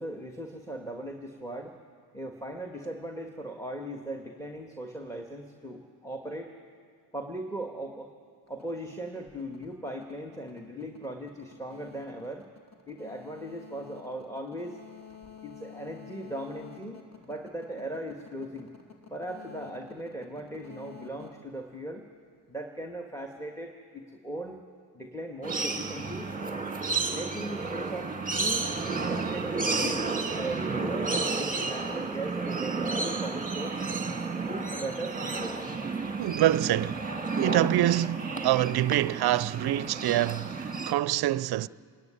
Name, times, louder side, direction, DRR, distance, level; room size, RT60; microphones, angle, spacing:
voice 1, 0.0-1.8 2.1-6.5 7.1-8.1 8.5-12.4 12.9-14.8 15.4-18.7 19.1-22.1 22.5-24.6 24.9-26.3 27.1-28.7 29.1-33.8 34.5-35.6, right 1 dB, 5° left, 1.6 m, -38 dB
sound 1, 8.5-22.3, left 7 dB, 35° left, 2.5 m, -50 dB
sound 2, 25.4-40.9, right 4 dB, 20° right, 1.7 m, -32 dB
voice 2, 36.2-37.1 37.4-41.7, right 14 dB, 60° right, 0.5 m, -26 dB
26.5 x 10.5 x 9.8 m
supercardioid pair, 60°, 44 cm